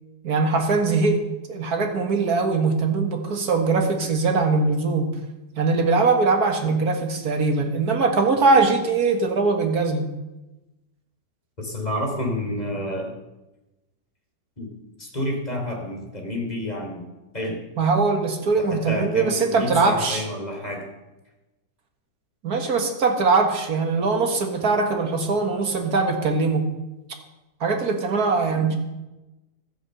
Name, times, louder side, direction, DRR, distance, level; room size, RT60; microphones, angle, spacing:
voice 1, 0.2-1.2 1.5-5.1 5.6-10.1 17.8-20.2 22.4-26.7 27.6-28.8, right 4 dB, 60° right, 5 dB, 2.2 m, -21 dB
voice 2, 11.6-13.1 14.6-17.0 17.3-17.6 18.5-20.9, left 1 dB, 25° left, 1 dB, 3.4 m, -29 dB
13.0 x 9.8 x 7.9 m, 1.0 s
omnidirectional pair, 1.8 m